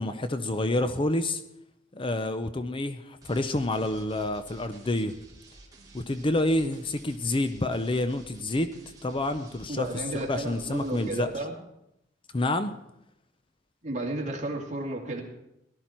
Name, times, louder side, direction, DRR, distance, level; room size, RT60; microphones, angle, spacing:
voice 1, 0.0-1.4 1.9-5.1 5.9-8.7 9.0-9.9 10.3-11.5 12.3-12.7, left 1 dB, 30° left, 10 dB, 0.6 m, -28 dB
sound 1, 3.2-11.2, right 2 dB, 20° right, 2.9 m, -52 dB
voice 2, 9.7-11.5 13.8-15.2, right 2 dB, 40° right, 0 dB, 2.6 m, -33 dB
17.5 x 11.5 x 4.5 m, 0.83 s
head